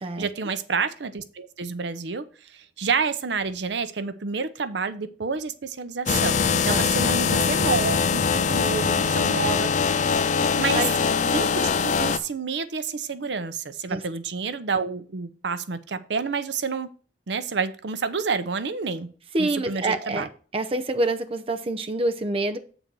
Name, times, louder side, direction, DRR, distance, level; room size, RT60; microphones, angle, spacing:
voice 1, 0.2-2.2 2.8-9.7 10.1-10.2 10.6-10.8 11.3-16.9 17.3-19.1 19.4-20.3, right 5 dB, 70° right, 0.6 m, -29 dB
sound 1, 6.1-12.2, left 5 dB, 40° left, 0.4 m, -22 dB
voice 2, 19.3-20.3 20.5-22.6, right 2 dB, 30° right, 0.6 m, -26 dB
7.9 x 4.0 x 6.0 m
head